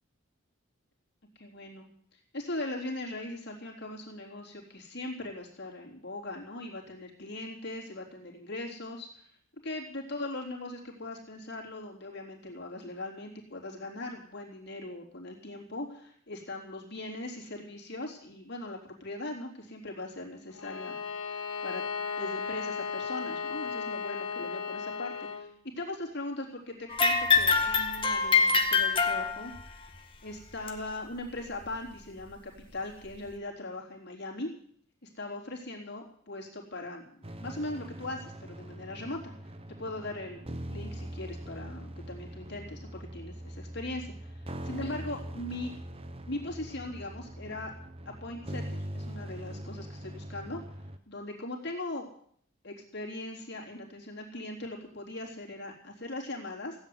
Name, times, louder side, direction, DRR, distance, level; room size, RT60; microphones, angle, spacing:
voice 1, 1.4-9.2 9.6-21.0 21.6-21.8 22.2-25.5 25.8-29.5 30.2-34.5 35.0-39.3 39.8-44.4 44.7-45.7 46.3-47.7 48.2-50.6 51.1-52.1 52.6-56.8, left 2 dB, 55° left, -2 dB, 3.8 m, -40 dB
Bowed string instrument, 20.6-25.5, left 5 dB, 85° left, 1.9 m, -35 dB
sound 1, 26.9-29.7 30.7-30.8 31.6-31.7 32.6-32.7, left 5 dB, 25° left, 1.8 m, -25 dB
sound 2, 37.2-51.0, right 1 dB, 30° right, 1.1 m, -42 dB
16.5 x 8.4 x 9.7 m, 0.62 s
head